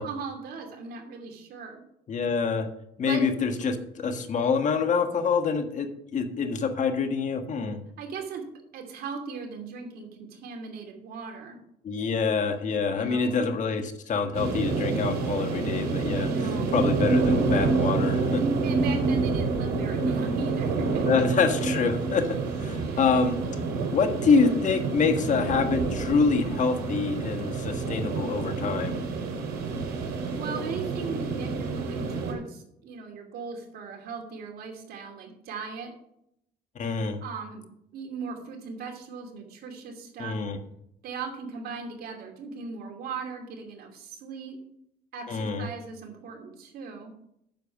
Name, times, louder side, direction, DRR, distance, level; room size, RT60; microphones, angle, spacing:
voice 1, 0.0-1.8 3.0-3.2 8.0-8.4 8.7-11.6 12.9-13.4 16.3-16.7 18.3-21.1 22.8-23.1 30.4-35.9 37.2-37.6 37.9-40.4 41.0-44.6 45.1-47.1, right 5 dB, 65° right, 2 dB, 2.7 m, -37 dB
voice 2, 2.1-2.7 3.0-7.8 11.8-16.3 16.7-18.4 21.1-23.4 23.9-28.9 36.7-37.2 40.2-40.6 45.3-45.7, left 5 dB, 45° left, 6 dB, 1.5 m, -26 dB
sound 1, 14.3-32.3, right 4 dB, 80° right, 4.5 m, -28 dB
9.3 x 6.9 x 5.9 m, 0.76 s
cardioid pair, 110°, 17 cm